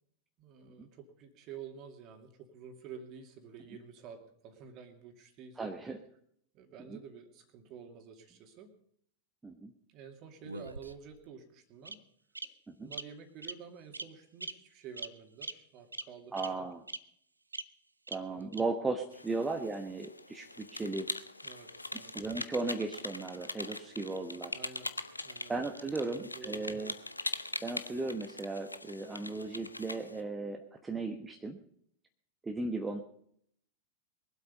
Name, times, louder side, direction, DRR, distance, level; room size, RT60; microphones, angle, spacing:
voice 1, 0.4-5.7 6.5-8.7 9.9-12.0 12.4-12.5 12.8-16.7 18.3-18.5 21.4-22.1 24.5-24.9 25.2-25.5 26.0-26.8, right 7 dB, 40° right, 6 dB, 2.5 m, -50 dB
voice 2, 5.6-6.0 6.9-7.0 9.4-9.7 12.8-12.9 16.3-16.8 18.1-21.1 22.1-24.6 25.5-26.9 27.6-31.6 32.4-33.0, right 3 dB, 10° right, 4 dB, 1.1 m, -36 dB
Bird vocalization bird call bird song, 10.4-11.2 11.9-12.0 12.4-12.5 12.9-13.0 13.4-13.6 13.9-14.1 14.4-14.5 15.0-15.1 15.4-15.5 15.9-16.0 16.4-16.5 16.9-17.0 17.5-17.6 18.1-18.2 18.5-18.6, right 3 dB, 80° right, 0.6 m, -40 dB
sound 1, 19.1-30.2, left 2 dB, 85° left, 0.7 m, -42 dB
22.0 x 8.2 x 5.3 m, 0.66 s
figure-of-eight pair, 90°, 0 cm